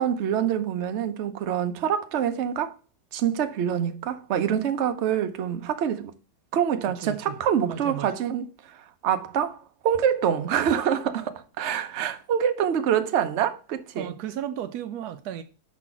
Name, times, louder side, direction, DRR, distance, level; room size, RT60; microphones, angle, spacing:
voice 1, 0.0-2.7 3.1-6.1 6.5-9.6 9.8-14.1, right 9 dB, 55° right, 0.9 m, -26 dB
voice 2, 7.0-8.1 13.9-15.4, right 10 dB, 80° right, 1.1 m, -34 dB
5.9 x 4.3 x 5.7 m
omnidirectional pair, 1.7 m